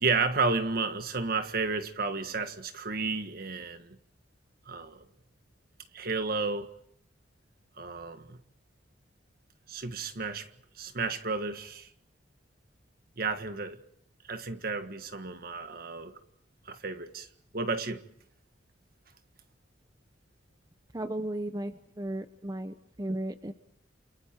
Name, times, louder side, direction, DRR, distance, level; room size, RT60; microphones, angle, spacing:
voice 1, 0.0-4.0 4.6-5.0 5.9-6.7 7.8-8.4 9.7-10.5 10.8-11.9 13.2-13.8 14.3-16.2 16.6-17.3 17.5-18.0, right 4 dB, 55° right, 1.7 m, -32 dB
voice 2, 20.9-23.5, right 1 dB, 20° right, 0.9 m, -35 dB
29.0 x 28.0 x 4.6 m
head